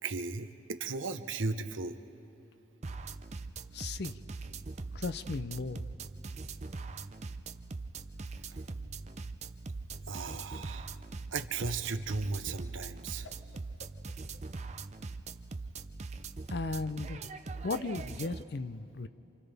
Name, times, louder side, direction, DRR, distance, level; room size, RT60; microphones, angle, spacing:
voice 1, 0.0-2.0 10.1-10.9 11.3-13.3, right 4 dB, 80° right, 9 dB, 0.9 m, -36 dB
sound 1, 2.8-18.4, right 3 dB, 35° right, 0.5 m, -42 dB
voice 2, 3.7-4.2 4.9-5.9 16.5-17.3 17.6-19.1, left 3 dB, 55° left, 13 dB, 0.6 m, -36 dB
Whoosh swoosh swish, 9.5-15.0, left 2 dB, 90° left, 1.0 m, -57 dB
28.5 x 27.0 x 3.4 m, 3.0 s
head